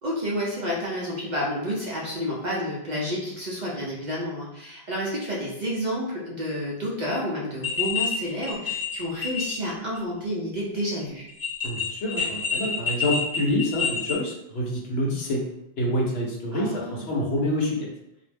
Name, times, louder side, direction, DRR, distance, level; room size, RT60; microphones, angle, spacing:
voice 1, 0.0-11.3 16.5-17.2, equal, 50° right, -5 dB, 0.6 m, -30 dB
sound 1, 7.6-8.1 8.4-9.7 10.0-10.1 11.3-14.1, left 5 dB, 20° left, 1.0 m, -28 dB
voice 2, 11.6-15.4 15.8-17.9, left 1 dB, 70° left, -1 dB, 0.9 m, -27 dB
2.4 x 2.1 x 3.2 m, 0.82 s
omnidirectional pair, 1.1 m